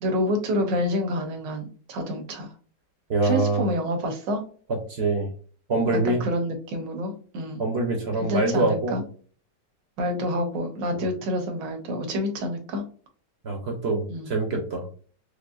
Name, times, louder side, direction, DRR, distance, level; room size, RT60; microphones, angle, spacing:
voice 1, 0.0-2.5 3.2-4.4 6.0-7.6 8.2-9.0 10.0-12.8 14.1-14.4, equal, 80° right, 5 dB, 1.5 m, -28 dB
voice 2, 3.1-3.7 4.9-5.3 5.7-6.2 7.6-9.0 11.0-11.1 13.4-14.9, right 2 dB, 50° right, 2 dB, 0.8 m, -24 dB
5.2 x 2.1 x 2.4 m, 0.42 s
omnidirectional pair, 1.9 m